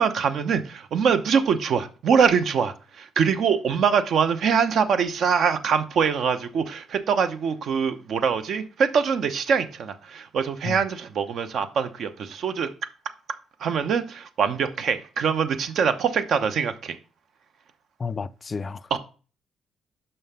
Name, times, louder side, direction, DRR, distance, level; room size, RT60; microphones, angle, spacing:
voice 1, 0.0-12.7 13.6-16.9 18.9-19.0, right 6 dB, 65° right, 0.8 m, -23 dB
voice 2, 18.0-19.0, left 5 dB, 35° left, 0.4 m, -32 dB
5.7 x 5.5 x 5.5 m
cardioid pair, 90°, 0 cm